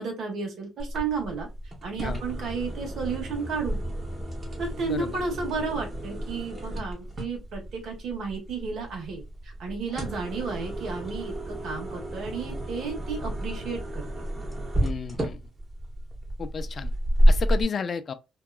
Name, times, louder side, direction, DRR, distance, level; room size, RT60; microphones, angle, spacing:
voice 1, 0.0-1.5 1.8-3.8 4.6-14.0, right 4 dB, 70° right, 1.2 m, -33 dB
sound 1, 0.8-17.6, equal, 30° right, 1.1 m, -30 dB
voice 2, 4.8-5.2 14.8-15.4 16.4-16.9 17.3-18.1, left 6 dB, 50° left, 0.3 m, -32 dB
2.8 x 2.3 x 2.2 m
cardioid pair, 90°, 0 cm